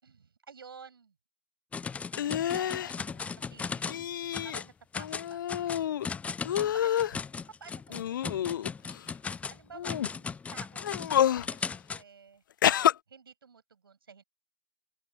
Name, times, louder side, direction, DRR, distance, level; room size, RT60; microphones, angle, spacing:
voice 1, 0.0-1.1 2.2-4.0 4.4-5.9 6.7-8.6 9.5-12.4 13.1-14.2, right 6 dB, 70° right, 7.4 m, -53 dB
sound 1, 1.7-4.0 4.3-4.7 4.9-12.0, left 5 dB, 10° left, 0.9 m, -37 dB
sound 2, 2.2-2.9 3.9-4.6 5.0-6.1 6.4-7.2 7.9-9.0 9.7-10.1 10.8-11.5 12.6-12.9, left 11 dB, 55° left, 0.5 m, -28 dB
open air
figure-of-eight pair, 105°, 13 cm